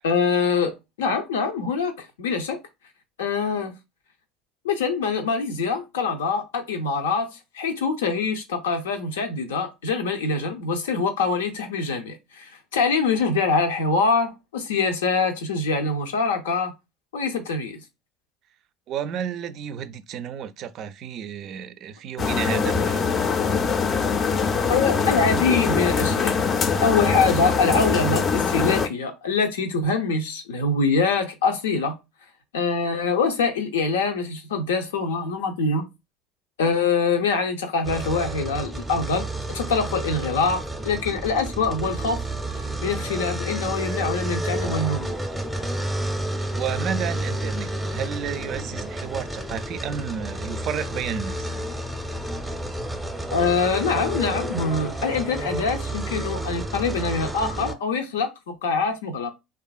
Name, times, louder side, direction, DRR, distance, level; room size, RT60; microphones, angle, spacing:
voice 1, 0.0-2.6 3.2-3.8 4.6-16.7 17.1-17.8 24.7-26.4 26.8-32.0 32.5-35.9 36.6-42.2 42.8-45.2 53.3-59.3, left 4 dB, 90° left, 0.6 m, -24 dB
voice 2, 18.9-23.2 46.5-51.5, right 8 dB, 55° right, 0.4 m, -32 dB
sound 1, 22.2-28.9, left 5 dB, 40° left, 0.4 m, -23 dB
sound 2, 37.8-57.7, right 1 dB, 5° right, 0.6 m, -30 dB
2.7 x 2.4 x 2.3 m
hypercardioid pair, 85°, 0 cm